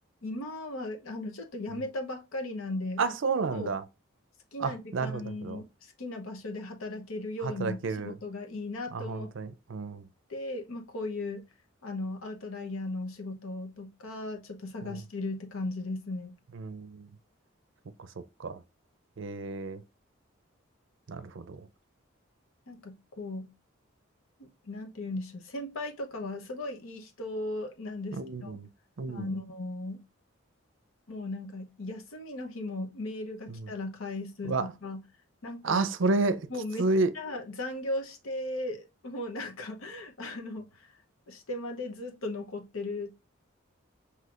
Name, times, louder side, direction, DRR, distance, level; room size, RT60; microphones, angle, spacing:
voice 1, 0.2-3.1 3.5-3.7 4.5-9.3 10.3-11.4 11.8-16.4 22.7-23.5 24.4-28.6 29.1-30.0 31.1-35.0 35.4-35.8 36.5-36.8 37.1-40.9 41.3-43.1, left 2 dB, 85° left, 0.9 m, -37 dB
voice 2, 3.0-3.8 4.6-5.6 7.4-8.1 8.9-10.0 14.8-14.9 16.5-17.1 18.0-18.1 18.4-18.6 19.2-19.8 21.1-21.7 28.1-28.7 29.0-29.3 33.5-33.7 34.4-34.7 35.6-36.5 36.8-37.1, right 3 dB, 65° right, 0.5 m, -31 dB
5.9 x 2.9 x 2.4 m
head